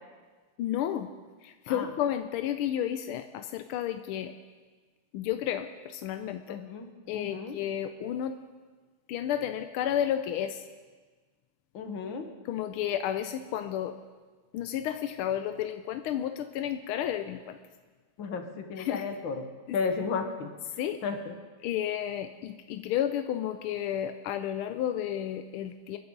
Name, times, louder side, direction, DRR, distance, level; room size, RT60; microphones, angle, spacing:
voice 1, 0.6-1.1 1.4-4.3 5.1-6.6 7.1-8.4 9.1-10.7 12.4-14.0 14.5-17.6 18.8-19.0 19.7-19.8 20.8-21.0 21.6-26.0, left 10 dB, 90° left, 8 dB, 1.5 m, -32 dB
voice 2, 6.5-6.9 7.1-7.6 11.7-12.3 18.2-19.4 19.7-20.5 21.0-21.3, left 5 dB, 65° left, 5 dB, 2.1 m, -33 dB
29.5 x 11.0 x 3.9 m, 1.4 s
omnidirectional pair, 2.3 m